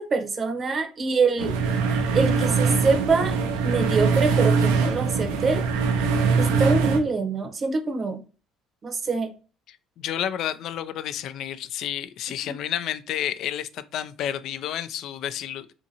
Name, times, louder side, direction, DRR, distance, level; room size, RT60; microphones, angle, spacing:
voice 1, 0.0-1.5 2.1-3.3 3.6-5.6 6.4-8.2 8.8-9.3 12.5-12.6, right 4 dB, 35° right, 0.7 m, -24 dB
sound 1, 1.4-7.0, right 5 dB, 85° right, 0.4 m, -22 dB
voice 2, 9.7-15.7, left 10 dB, 65° left, 0.3 m, -31 dB
2.6 x 2.6 x 2.7 m
supercardioid pair, 80°, 0 cm